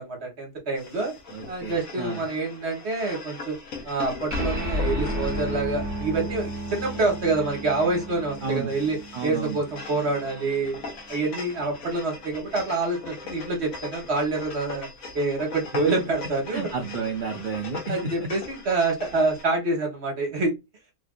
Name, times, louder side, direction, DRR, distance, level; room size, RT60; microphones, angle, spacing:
voice 1, 0.0-1.1 1.5-3.6 3.8-10.8 11.1-14.9 15.1-16.7 17.9-20.5, right 3 dB, 45° right, 1.2 m, -27 dB
sound 1, 0.8-19.4, left 3 dB, 60° left, 1.3 m, -41 dB
voice 2, 1.3-2.3 8.4-8.7 9.1-9.6 16.5-18.3, right 4 dB, 85° right, 0.4 m, -31 dB
sound 2, 4.3-11.1, equal, 10° right, 1.0 m, -32 dB
3.4 x 2.5 x 2.2 m
omnidirectional pair, 1.7 m